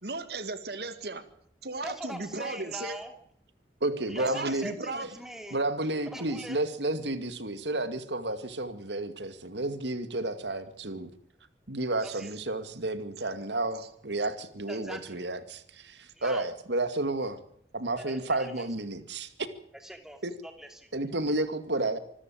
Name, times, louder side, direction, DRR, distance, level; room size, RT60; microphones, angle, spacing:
voice 1, 0.0-1.2 1.6-3.0 4.3-5.1 12.0-12.2 13.8-13.9, right 3 dB, 65° right, 11 dB, 2.0 m, -36 dB
voice 2, 1.8-3.1 4.1-5.6 6.1-6.6 12.0-12.3 14.7-15.2 16.1-16.5 18.0-18.7 19.7-20.9, equal, 5° right, 6 dB, 2.8 m, -42 dB
voice 3, 3.8-4.6 5.5-11.1 11.7-17.4 17.7-19.3 20.2-20.3 20.9-22.0, right 2 dB, 80° right, 11 dB, 2.3 m, -31 dB
26.0 x 14.0 x 8.7 m, 0.67 s
head